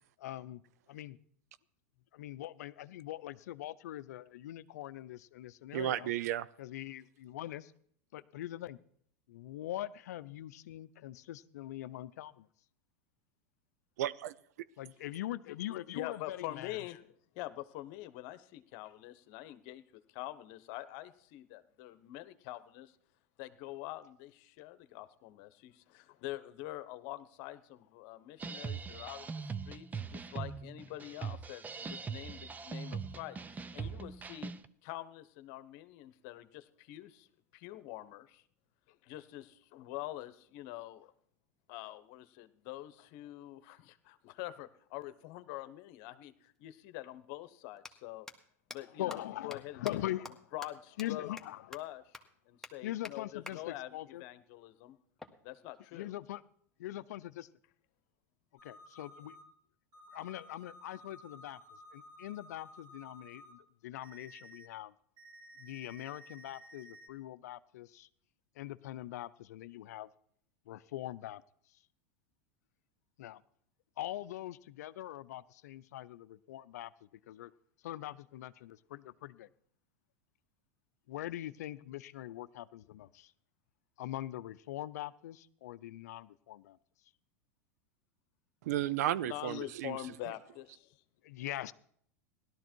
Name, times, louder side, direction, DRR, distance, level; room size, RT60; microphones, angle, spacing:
voice 1, 0.2-0.6 0.9-1.2 2.1-6.1 6.6-7.7 8.1-8.8 9.3-12.5 14.8-16.8 49.0-50.3 51.0-51.6 52.8-54.2 55.9-56.4 56.8-57.5 58.6-59.4 60.1-61.6 61.9-64.9 65.6-68.1 68.6-70.1 70.7-71.4 73.2-73.4 74.0-77.5 77.8-79.5 81.1-83.3 84.0-86.8 91.2-91.7, left 14 dB, 75° left, 17 dB, 0.6 m, -42 dB
voice 2, 5.7-6.5 14.0-14.3 88.6-90.0, right 12 dB, 75° right, 17 dB, 0.7 m, -33 dB
voice 3, 15.9-23.0 23.4-34.5 34.8-37.3 37.5-38.4 38.9-41.1 41.7-48.3 48.7-49.8 50.5-51.3 51.7-52.2 52.5-55.0 55.4-56.1 89.2-91.0, left 15 dB, 60° left, 13 dB, 1.1 m, -45 dB
sound 1, 28.4-34.7, right 5 dB, 20° right, 0.7 m, -41 dB
sound 2, 46.5-46.6 47.7-47.9 48.3-48.4 48.7-48.8 49.1-49.2 49.5-49.6 49.8-49.9 50.2-50.3 50.6-50.7 51.0-51.1 51.4-51.5 51.7-51.8 52.1-52.2 52.6-52.7 53.0-53.1 53.5-53.6 55.2-56.2, left 2 dB, 5° left, 1.5 m, -47 dB
sound 3, 58.6-59.4 59.9-63.5 64.0-64.7 65.2-67.1, equal, 40° right, 3.7 m, -55 dB
17.0 x 12.5 x 4.6 m, 0.66 s
hypercardioid pair, 105°, 9 cm